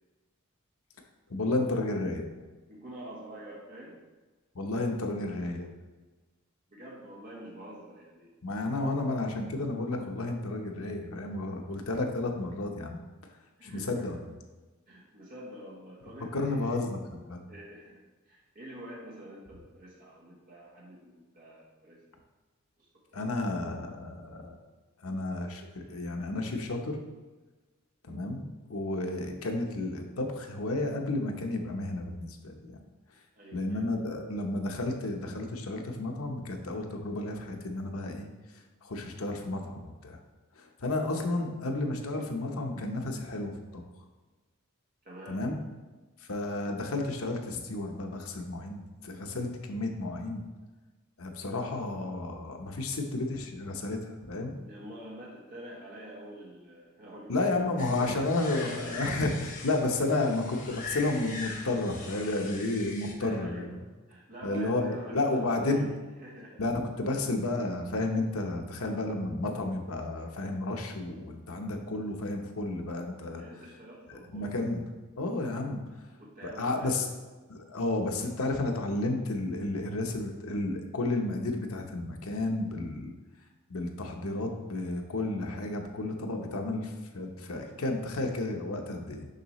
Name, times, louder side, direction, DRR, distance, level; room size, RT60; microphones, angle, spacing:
voice 1, 1.3-2.3 4.5-5.7 8.4-13.0 13.6-14.2 16.3-17.4 23.1-24.5 25.0-27.0 28.0-32.8 33.5-38.3 38.8-40.2 40.6-43.8 45.3-45.6 46.3-50.4 51.2-54.5 57.3-63.8 64.4-65.9 66.6-73.4 74.1-74.9 75.2-75.8 76.4-77.1 77.5-83.1 83.7-89.3, left 2 dB, 90° left, 3 dB, 0.9 m, -32 dB
voice 2, 2.7-4.0 6.7-8.3 11.3-11.4 13.6-14.2 14.9-16.8 17.5-22.0 22.8-23.3 25.8-26.0 26.4-26.5 33.3-33.9 45.0-45.4 54.6-57.6 57.9-58.2 58.5-59.1 60.1-60.3 63.2-65.9 66.2-66.7 73.3-74.5 76.0-77.1, right 1 dB, 40° right, -4 dB, 1.1 m, -47 dB
sound 1, 57.8-63.1, left 3 dB, 40° left, 1.0 m, -42 dB
6.7 x 5.6 x 3.1 m, 1.3 s
head